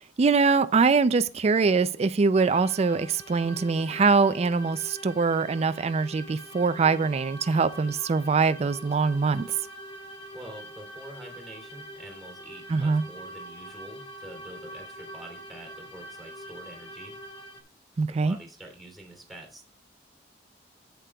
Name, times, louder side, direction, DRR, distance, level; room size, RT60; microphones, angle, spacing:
voice 1, 0.2-9.5 12.7-13.0 18.0-18.4, right 4 dB, 35° right, 0.4 m, -23 dB
sound 1, 2.4-17.6, right 1 dB, 30° left, 1.5 m, -44 dB
voice 2, 10.3-17.2 18.1-19.7, right 1 dB, ahead, 2.7 m, -46 dB
11.0 x 8.3 x 2.3 m
head